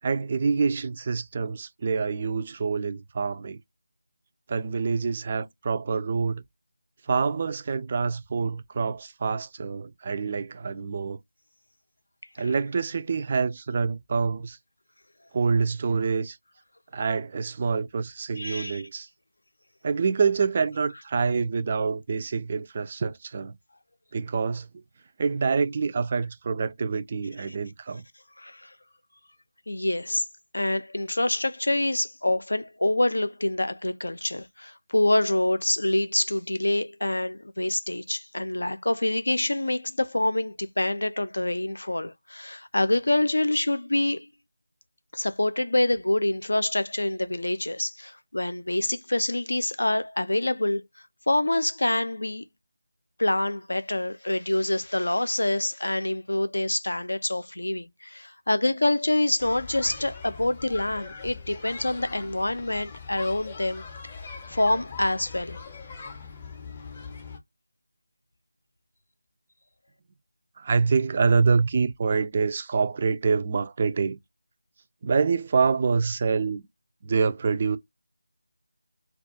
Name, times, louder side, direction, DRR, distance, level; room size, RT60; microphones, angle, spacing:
voice 1, 0.0-3.6 4.5-6.4 7.1-11.2 12.4-14.6 15.3-16.4 16.9-19.1 19.8-23.5 24.1-24.7 25.2-28.0 70.6-74.2 75.0-76.7 77.0-77.8, right 5 dB, 30° right, 0.3 m, -26 dB
voice 2, 18.4-18.8 28.4-28.7 29.7-30.2 30.5-44.3 45.1-50.8 51.3-52.5 53.2-63.8 64.5-65.6, left 1 dB, 70° left, 0.4 m, -26 dB
sound 1, 59.4-67.4, left 5 dB, 25° left, 0.5 m, -41 dB
2.3 x 2.3 x 2.6 m
figure-of-eight pair, 165°, 0 cm